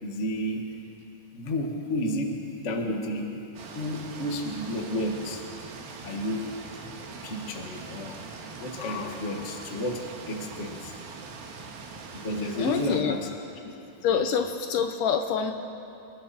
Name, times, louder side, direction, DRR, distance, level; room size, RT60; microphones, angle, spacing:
voice 1, 0.0-0.7 1.3-3.4 3.7-5.4 6.0-6.6 7.2-8.3 8.6-11.0 12.1-13.2 14.1-14.3, left 1 dB, 50° left, 2 dB, 0.8 m, -31 dB
sound 1, 3.6-13.0, right 4 dB, 75° right, 3.4 m, -42 dB
voice 2, 12.6-13.2 14.0-15.5, left 7 dB, 75° left, 6 dB, 2.1 m, -26 dB
30.0 x 20.0 x 4.3 m, 2.8 s
omnidirectional pair, 4.3 m